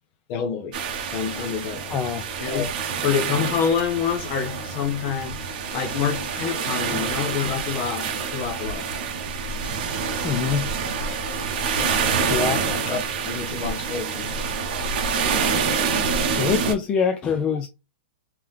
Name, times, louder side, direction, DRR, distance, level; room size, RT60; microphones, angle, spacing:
voice 1, 0.3-0.8 1.1-2.1 2.4-2.7 3.0-8.9 11.8-14.4, left 7 dB, 30° left, 0.8 m, -28 dB
sound 1, 0.7-16.7, right 5 dB, 45° right, 0.9 m, -27 dB
voice 2, 1.9-2.2 6.9-7.0 10.2-10.7 12.3-12.6 16.4-17.7, left 6 dB, 15° left, 0.3 m, -24 dB
3.7 x 2.9 x 3.2 m
hypercardioid pair, 170°, 6 cm